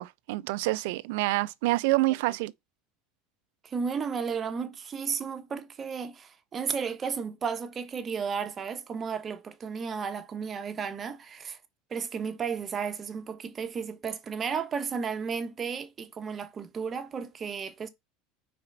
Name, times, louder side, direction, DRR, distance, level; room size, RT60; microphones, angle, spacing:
voice 1, 0.0-2.5, right 20 dB, 70° right, 0.5 m, -27 dB
voice 2, 3.6-11.6 11.9-17.9, right 6 dB, 30° right, 1.2 m, -33 dB
4.9 x 4.3 x 5.9 m
supercardioid pair, 100°, 0 cm